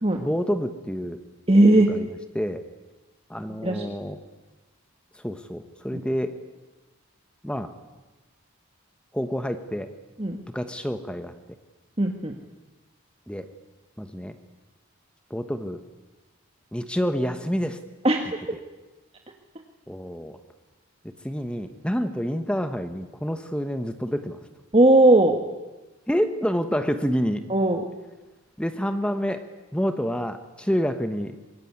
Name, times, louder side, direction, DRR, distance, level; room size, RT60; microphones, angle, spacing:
voice 1, 0.2-1.2 1.8-2.6 3.3-4.2 5.1-6.3 7.4-7.7 9.1-9.9 10.5-11.3 13.3-13.5 14.0-14.4 15.3-15.8 16.7-17.8 19.9-20.4 21.2-24.4 26.1-27.4 28.6-29.4 29.7-31.4, equal, 5° left, 8 dB, 1.1 m, -28 dB
voice 2, 1.5-1.9 3.6-3.8 5.9-6.0 10.2-10.4 12.0-12.3 18.0-18.2 24.7-25.4 27.5-27.8, right 1 dB, 25° right, 3 dB, 1.6 m, -17 dB
25.0 x 22.5 x 9.6 m, 1.1 s
head